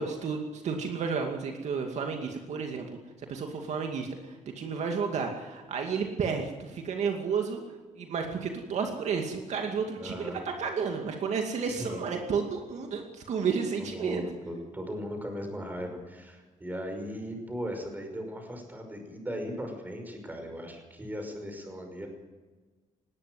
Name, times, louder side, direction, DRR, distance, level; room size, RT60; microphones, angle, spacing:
voice 1, 0.0-3.0 3.3-7.6 8.0-14.2, right 5 dB, 60° right, 3 dB, 2.4 m, -32 dB
voice 2, 10.0-10.4 11.7-12.0 13.8-22.1, equal, 15° right, 4 dB, 5.6 m, -38 dB
20.0 x 17.5 x 7.8 m, 1.3 s
cardioid pair, 135°, 13 cm